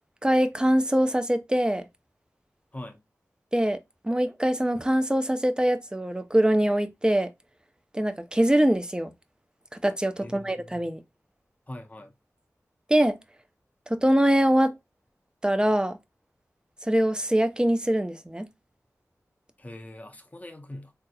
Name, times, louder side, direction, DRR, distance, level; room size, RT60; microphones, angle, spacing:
voice 1, 0.2-1.8 3.5-3.8 4.0-7.3 7.9-9.1 9.8-11.0 12.9-13.2 13.9-14.7 15.4-16.0 16.9-18.5, right 1 dB, 15° right, 0.5 m, -23 dB
voice 2, 10.2-10.8 11.7-12.1 19.6-20.9, left 1 dB, 25° left, 0.6 m, -42 dB
3.6 x 2.8 x 2.2 m
cardioid pair, 40°, 6 cm